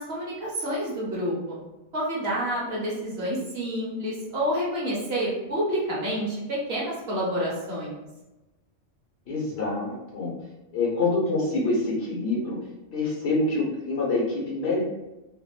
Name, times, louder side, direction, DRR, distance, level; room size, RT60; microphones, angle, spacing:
voice 1, 0.0-1.6 1.9-8.0, equal, 60° right, -5 dB, 1.1 m, -29 dB
voice 2, 9.3-10.3 10.7-12.6 12.9-14.8, left 2 dB, 65° left, -4 dB, 1.1 m, -26 dB
3.5 x 2.2 x 2.3 m, 1.0 s
omnidirectional pair, 1.2 m